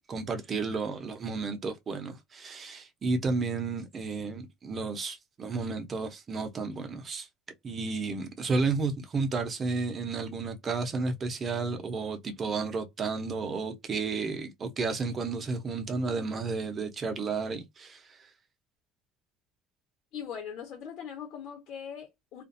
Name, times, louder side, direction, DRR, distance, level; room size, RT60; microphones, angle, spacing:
voice 1, 0.1-7.3 7.6-18.2, right 4 dB, 30° right, 0.8 m, -32 dB
voice 2, 20.1-22.4, left 8 dB, 60° left, 1.1 m, -40 dB
2.5 x 2.3 x 2.6 m
cardioid pair, 120°, 0 cm